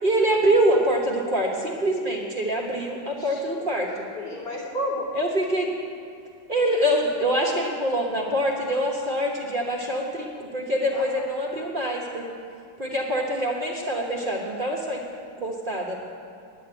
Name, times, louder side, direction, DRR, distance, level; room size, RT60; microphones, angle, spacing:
voice 1, 0.0-3.9 5.1-5.7 6.5-12.2 12.8-15.0 15.4-15.9, right 1 dB, 35° right, -2 dB, 1.1 m, -25 dB
voice 2, 3.1-3.6 4.1-5.1 10.9-11.0, equal, 75° left, -7 dB, 3.6 m, -32 dB
10.0 x 8.6 x 8.8 m, 2.4 s
omnidirectional pair, 1.9 m